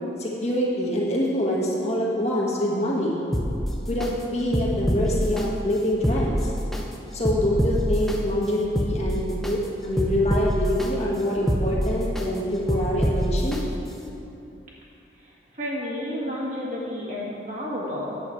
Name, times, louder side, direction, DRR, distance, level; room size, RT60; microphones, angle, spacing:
voice 1, 0.2-3.2 3.9-6.4 7.1-13.6, left 1 dB, 35° left, -5 dB, 1.4 m, -25 dB
sound 1, 3.3-4.1 4.5-5.4 5.9-6.8 7.3-8.2 8.6-9.5 10.0-10.9 11.3-12.3 12.7-13.6 14.1-14.2, equal, ahead, 0.6 m, -25 dB
voice 2, 15.2-18.2, left 1 dB, 40° right, -5 dB, 1.7 m, -31 dB
9.3 x 7.7 x 4.5 m, 2.9 s
head